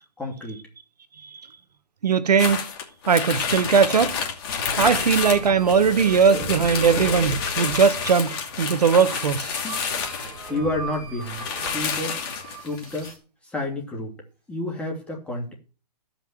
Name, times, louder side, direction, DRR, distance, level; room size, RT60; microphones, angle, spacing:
voice 1, 0.2-0.6 9.6-9.8 10.5-11.4 11.7-12.2 12.6-13.1 13.5-14.1 14.5-15.5, left 2 dB, 5° left, 2.6 m, -29 dB
voice 2, 2.0-2.7 3.1-4.2 4.8-9.6, right 6 dB, 75° right, 1.3 m, -19 dB
sound 1, 2.4-10.6 10.9-11.0 11.2-13.1, left 6 dB, 35° left, 2.6 m, -29 dB
sound 2, 4.9-13.2, right 3 dB, 25° right, 3.9 m, -36 dB
15.5 x 5.9 x 7.3 m
hypercardioid pair, 145°, 21 cm